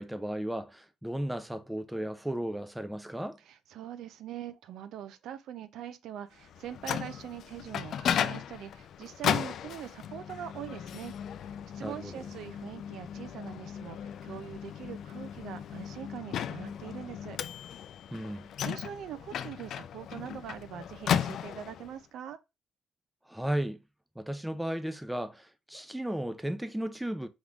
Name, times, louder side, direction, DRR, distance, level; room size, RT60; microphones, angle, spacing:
voice 1, 0.0-3.4 11.8-12.3 18.1-18.4 23.3-23.8 24.2-27.3, right 1 dB, 5° right, 0.5 m, -35 dB
voice 2, 3.5-17.4 18.6-22.4, right 10 dB, 75° right, 0.4 m, -43 dB
Microwave oven, 6.5-21.9, left 9 dB, 65° left, 0.3 m, -35 dB
3.6 x 3.5 x 3.5 m
cardioid pair, 110°, 0 cm